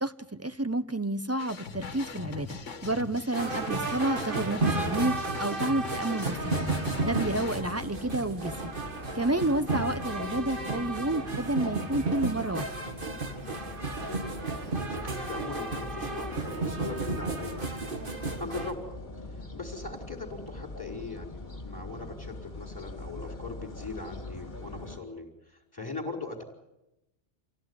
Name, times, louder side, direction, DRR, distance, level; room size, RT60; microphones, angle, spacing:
voice 1, 0.0-6.5 7.0-8.7 9.1-12.7, right 2 dB, 15° right, 12 dB, 0.8 m, -30 dB
sound 1, 1.4-7.6, left 5 dB, 90° left, 1.7 m, -41 dB
sound 2, 3.3-18.7, right 3 dB, 45° right, 2.1 m, -33 dB
sound 3, 6.3-25.0, left 2 dB, 40° left, 2.6 m, -43 dB
voice 2, 14.0-19.0 19.2-26.4, left 3 dB, 20° left, 0 dB, 5.0 m, -40 dB
27.5 x 16.5 x 9.8 m, 0.93 s
omnidirectional pair, 1.2 m